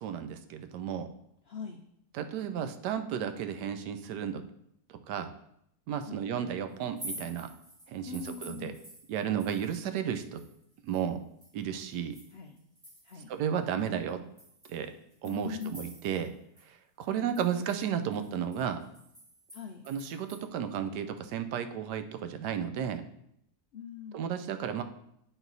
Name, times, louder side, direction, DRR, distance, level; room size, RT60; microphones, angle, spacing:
voice 1, 0.0-1.1 2.1-4.4 5.1-5.3 5.9-7.5 7.9-8.7 9.1-10.4 10.8-11.2 11.5-12.2 13.3-14.2 14.7-14.9 15.2-16.3 16.6-18.8 19.9-23.0 24.1-24.8, right 8 dB, 85° right, 9 dB, 1.2 m, -33 dB
voice 2, 1.5-1.8 6.0-6.2 8.0-8.8 12.3-12.6 13.0-13.3 15.2-15.8 17.0-17.3 19.5-19.8 23.7-24.2, left 6 dB, 85° left, 4 dB, 0.5 m, -41 dB
sound 1, 6.8-9.9 10.1-13.3 13.8-13.9 14.4-16.3 16.6-16.7 17.0-20.4, right 1 dB, 20° right, 1.7 m, -49 dB
9.0 x 4.1 x 3.9 m, 0.75 s
omnidirectional pair, 1.8 m